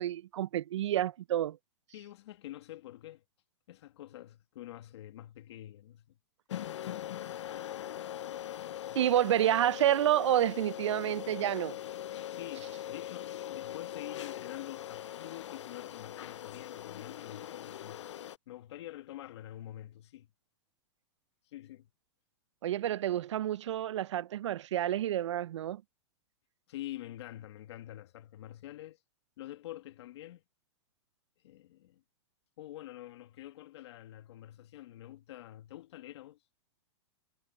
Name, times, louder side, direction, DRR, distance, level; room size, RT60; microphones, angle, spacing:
voice 1, 0.0-1.6 9.0-11.8 22.6-25.8, right 12 dB, 90° right, 0.4 m, -29 dB
voice 2, 1.9-3.2 3.7-6.2 6.8-7.3 8.7-9.0 12.3-18.1 18.5-20.3 21.5-21.9 26.7-29.0 29.4-30.4 31.4-32.0 32.6-36.4, left 14 dB, 70° left, 1.7 m, -47 dB
sound 1, 6.5-18.4, left 11 dB, 90° left, 0.5 m, -41 dB
hypercardioid pair, 135°, 15 cm